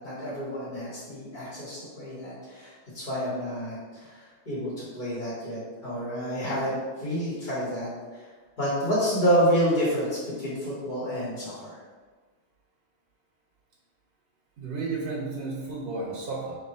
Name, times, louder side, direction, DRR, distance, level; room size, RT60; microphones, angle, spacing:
voice 1, 0.0-3.7 4.0-4.1 4.4-6.8 7.0-7.9 8.6-11.7, equal, 50° left, -9 dB, 1.5 m, -28 dB
voice 2, 14.6-16.6, right 3 dB, 65° right, -3 dB, 0.9 m, -32 dB
3.2 x 3.0 x 4.1 m, 1.4 s
omnidirectional pair, 1.1 m